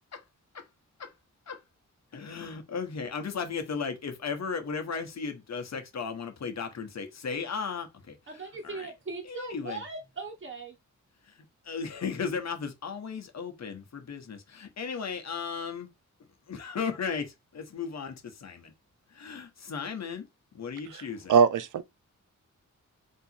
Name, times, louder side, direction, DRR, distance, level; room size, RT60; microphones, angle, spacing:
voice 1, 2.1-8.9 9.2-9.8 11.3-11.4 11.6-15.9 16.5-18.7 19.1-20.3 20.5-21.3, left 5 dB, 60° left, 1.0 m, -36 dB
voice 2, 8.3-10.7, right 3 dB, 40° right, 1.3 m, -39 dB
voice 3, 20.9-21.8, right 6 dB, 75° right, 0.5 m, -23 dB
3.5 x 2.9 x 4.2 m
wide cardioid pair, 95°, 31 cm